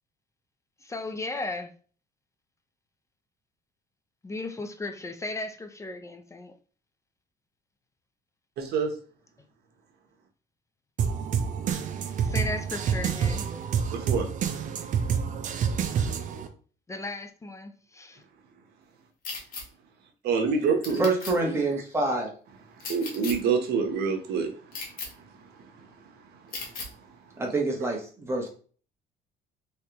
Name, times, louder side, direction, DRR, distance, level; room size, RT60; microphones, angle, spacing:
voice 1, 0.8-1.7 4.2-6.5 12.2-13.4 16.9-18.2, left 2 dB, 20° left, 0.4 m, -35 dB
voice 2, 8.6-8.9 13.9-14.3 20.2-21.1 21.3-21.6 22.9-24.5 25.1-25.2 25.6-25.9 26.5-26.9, right 5 dB, 75° right, 0.9 m, -27 dB
sound 1, 11.0-16.5, right 7 dB, 50° right, 0.5 m, -28 dB
sound 2, 19.2-19.6 20.8-21.3 22.8-23.3 24.7-25.1 26.5-26.9, left 4 dB, 60° left, 1.1 m, -36 dB
voice 3, 21.0-22.3 27.4-28.5, right 2 dB, 15° right, 1.1 m, -26 dB
3.2 x 3.2 x 2.9 m
cardioid pair, 110°, 17 cm